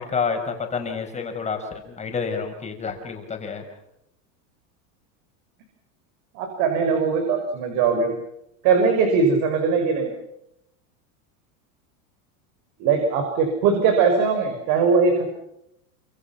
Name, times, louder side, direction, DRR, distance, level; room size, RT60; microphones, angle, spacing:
voice 1, 0.0-3.6, left 5 dB, 15° left, 4 dB, 5.3 m, -29 dB
voice 2, 6.3-8.1 8.6-10.1 12.8-15.3, right 5 dB, 50° right, 5 dB, 5.9 m, -20 dB
29.0 x 26.5 x 5.9 m, 0.80 s
supercardioid pair, 160°, 43 cm